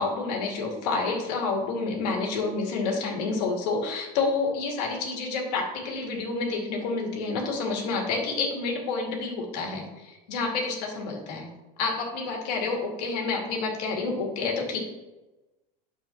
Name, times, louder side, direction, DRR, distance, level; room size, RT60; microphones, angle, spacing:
voice 1, 0.0-11.5 11.8-14.8, left 4 dB, 85° left, 0 dB, 2.3 m, -29 dB
9.2 x 7.0 x 3.0 m, 1.1 s
supercardioid pair, 125°, 20 cm